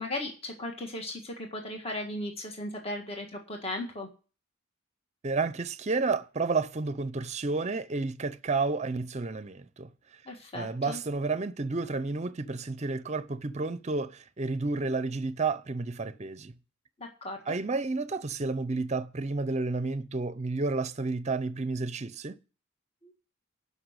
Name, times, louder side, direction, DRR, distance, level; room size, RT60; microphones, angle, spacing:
voice 1, 0.0-4.1 10.3-11.0 17.0-17.4 23.0-23.1, left 1 dB, 30° left, 1.7 m, -36 dB
voice 2, 5.2-9.9 10.5-16.5 17.5-22.4, right 3 dB, 35° right, 0.6 m, -31 dB
12.5 x 5.5 x 8.1 m
head